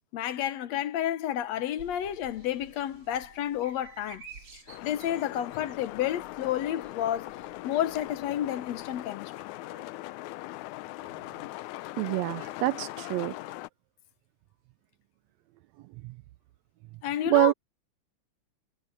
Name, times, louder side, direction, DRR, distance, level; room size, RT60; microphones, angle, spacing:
voice 1, 0.1-4.2 4.5-7.3 7.6-9.3 17.0-17.5, left 11 dB, 70° left, 2.1 m, -31 dB
sound 1, 1.8-9.1, right 6 dB, 50° right, 3.2 m, -53 dB
sound 2, 4.7-13.7, left 17 dB, 85° left, 2.0 m, -40 dB
voice 2, 12.0-13.3 17.3-17.5, right 20 dB, 80° right, 1.7 m, -25 dB
omnidirectional pair, 3.4 m